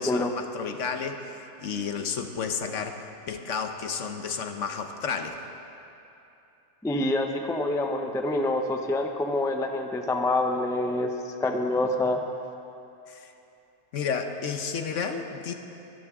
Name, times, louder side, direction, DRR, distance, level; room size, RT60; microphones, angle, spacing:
voice 1, 0.0-5.4 13.1-13.3 13.9-15.5, left 6 dB, 70° left, 6 dB, 1.2 m, -32 dB
voice 2, 6.8-12.2, left 2 dB, 5° left, 4 dB, 0.4 m, -26 dB
22.5 x 13.0 x 3.7 m, 2.9 s
omnidirectional pair, 1.4 m